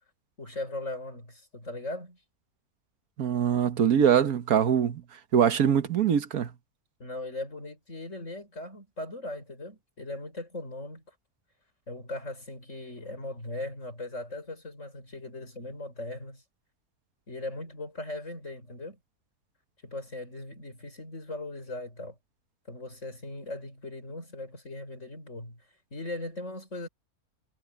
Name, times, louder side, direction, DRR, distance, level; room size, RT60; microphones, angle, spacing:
voice 1, 0.4-2.2 7.0-11.0 11.9-16.4 17.3-19.0 19.8-22.2 22.7-25.6 25.9-26.9, left 2 dB, 55° left, 6.9 m, -39 dB
voice 2, 3.2-5.0 5.3-6.5, right 8 dB, 80° right, 1.5 m, -23 dB
omnidirectional pair, 1.5 m